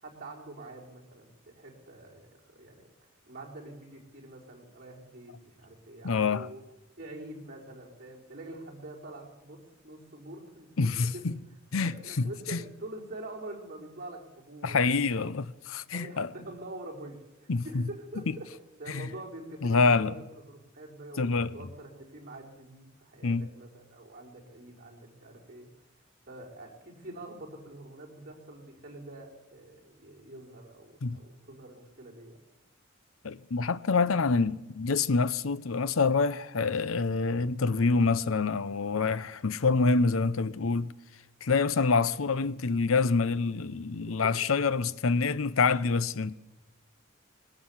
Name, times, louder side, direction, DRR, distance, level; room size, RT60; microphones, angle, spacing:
voice 1, 0.0-2.9 3.3-6.6 7.0-11.2 11.8-15.3 15.9-18.5 18.8-25.7 26.3-32.4, right 2 dB, 45° right, 4.7 m, -45 dB
voice 2, 6.0-6.5 10.8-11.4 11.7-12.6 14.6-16.3 17.5-17.8 18.3-18.4 18.9-19.1 19.6-20.1 21.2-21.5 23.2-23.5 31.0-31.2 33.2-40.9 41.4-46.3, left 4 dB, 85° left, 0.7 m, -26 dB
20.5 x 17.0 x 7.3 m
head